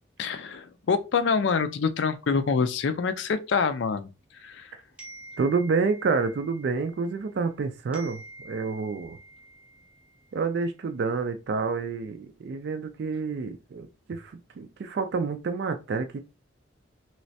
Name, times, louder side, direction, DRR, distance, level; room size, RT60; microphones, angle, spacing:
voice 1, 0.2-4.1 4.4-4.7, left 5 dB, 65° left, 0.4 m, -26 dB
sound 1, 5.0-7.6 7.9-10.5, right 1 dB, 10° right, 0.7 m, -48 dB
voice 2, 5.4-9.2 10.3-16.2, right 4 dB, 55° right, 0.3 m, -28 dB
3.1 x 3.1 x 2.7 m
head